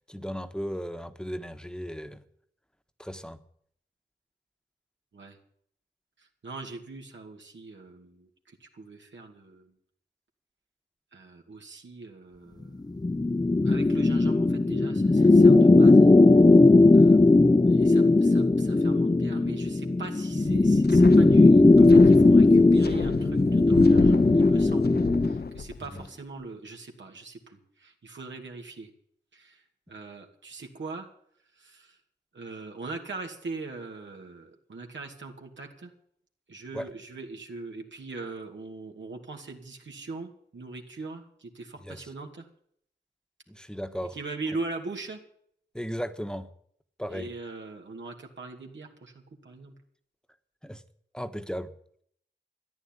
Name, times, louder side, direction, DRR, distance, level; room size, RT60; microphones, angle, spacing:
voice 1, 0.1-2.2 3.0-3.4 25.9-26.1 36.7-36.9 41.8-42.1 43.5-44.2 45.7-46.5 47.0-47.3 50.6-50.8 51.1-51.7, equal, 5° left, 9 dB, 1.3 m, -36 dB
voice 2, 6.2-9.7 11.1-12.8 13.6-16.1 16.9-17.2 17.6-24.9 25.2-28.9 29.3-31.1 31.6-32.0 32.3-35.9 36.5-42.5 44.1-45.2 47.1-49.7, right 3 dB, 80° right, 2 dB, 2.5 m, -41 dB
sound 1, 13.0-25.4, left 2 dB, 20° left, 0.7 m, -18 dB
Wind, 20.5-26.1, left 5 dB, 60° left, 0.7 m, -32 dB
13.5 x 10.0 x 9.1 m, 0.65 s
cardioid pair, 45°, 19 cm